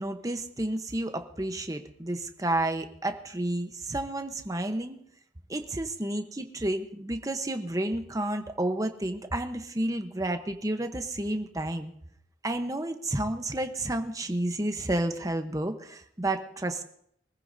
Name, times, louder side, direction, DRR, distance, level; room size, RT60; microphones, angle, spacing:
voice 1, 0.0-5.0 5.5-11.9 12.4-16.8, right 1 dB, 20° right, 7 dB, 0.9 m, -31 dB
24.5 x 15.0 x 2.7 m, 0.70 s
head